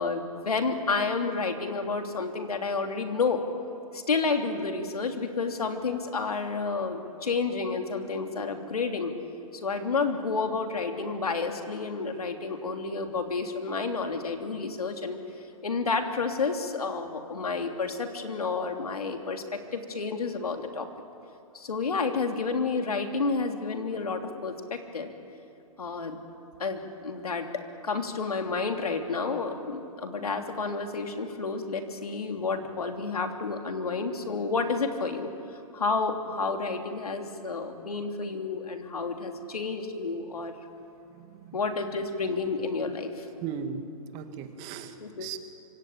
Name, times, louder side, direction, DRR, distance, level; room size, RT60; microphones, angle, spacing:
voice 1, 0.0-3.4 3.9-9.1 9.6-15.2 15.6-20.9 21.5-25.1 25.8-26.2 26.6-35.3 35.7-40.5 41.5-43.3 45.0-45.3, left 4 dB, 90° left, 4 dB, 3.2 m, -30 dB
voice 2, 41.1-41.6 43.4-43.8 44.1-45.4, right 7 dB, 40° right, 6 dB, 2.6 m, -37 dB
26.0 x 25.0 x 8.7 m, 2.6 s
hypercardioid pair, 125°, 19 cm